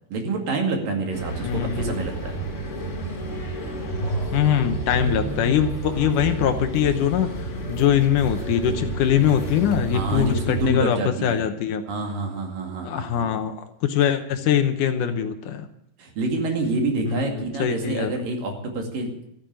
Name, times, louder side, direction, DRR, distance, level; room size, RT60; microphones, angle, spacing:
voice 1, 0.1-2.3 6.0-6.1 9.9-11.4 11.9-13.3 16.0-19.3, right 2 dB, 60° right, 2 dB, 3.8 m, -27 dB
sound 1, 1.1-10.7, right 2 dB, 35° left, 1.2 m, -30 dB
voice 2, 1.4-2.0 4.3-7.3 7.7-11.8 12.8-13.6 13.8-15.7 17.1-18.1, left 9 dB, 75° left, 8 dB, 2.0 m, -22 dB
14.0 x 9.0 x 8.8 m, 0.78 s
omnidirectional pair, 4.6 m